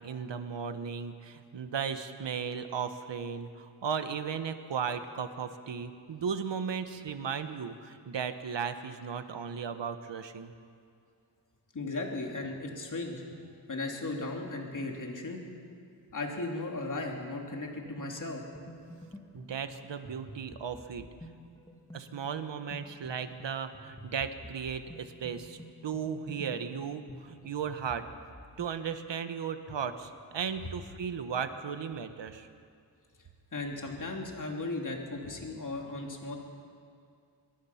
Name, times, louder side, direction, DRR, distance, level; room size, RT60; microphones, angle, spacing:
voice 1, 0.0-10.5 19.3-21.1 21.9-25.6 25.8-28.1 28.6-32.5, right 7 dB, 90° right, 9 dB, 1.3 m, -36 dB
voice 2, 11.7-13.2 13.7-15.4 16.1-18.4 33.5-36.4, left 2 dB, 45° left, 1 dB, 3.0 m, -36 dB
sound 1, 17.5-28.8, equal, 10° left, 2.1 m, -50 dB
25.0 x 22.0 x 5.9 m, 2.3 s
wide cardioid pair, 140°, 42 cm